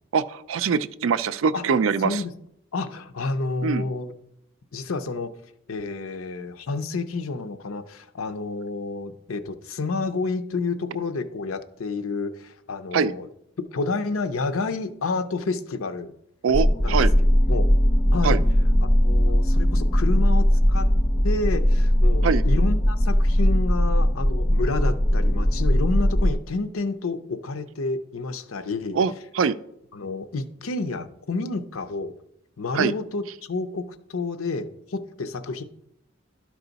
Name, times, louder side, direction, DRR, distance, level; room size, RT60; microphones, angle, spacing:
voice 1, 0.1-2.2 3.6-3.8 12.9-13.1 16.4-17.1 18.2-18.4 22.2-22.4 28.9-29.6 32.7-32.9, right 6 dB, 70° right, 15 dB, 0.4 m, -23 dB
voice 2, 2.0-2.3 2.7-4.1 4.7-5.3 5.7-13.3 13.7-16.1 16.8-17.1 17.5-17.7 18.1-18.4 18.8-20.9 21.2-29.0 29.9-32.1 32.6-35.6, left 3 dB, 80° left, 10 dB, 0.6 m, -29 dB
sound 1, 16.5-26.3, equal, 20° left, 0.5 m, -19 dB
12.0 x 4.7 x 4.0 m, 0.76 s
head